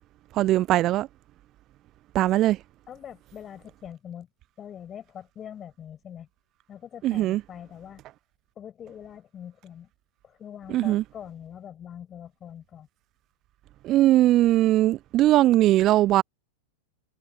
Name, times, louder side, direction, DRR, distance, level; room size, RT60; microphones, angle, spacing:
voice 1, 0.3-1.1 2.1-2.6 7.0-7.4 10.7-11.0 13.8-16.2, right 15 dB, 35° right, 0.3 m, -20 dB
voice 2, 2.9-4.3 4.6-6.3 6.7-8.0 8.6-9.9 10.2-12.9, left 9 dB, 25° left, 7.5 m, -43 dB
figure-of-eight pair, 90°, 0 cm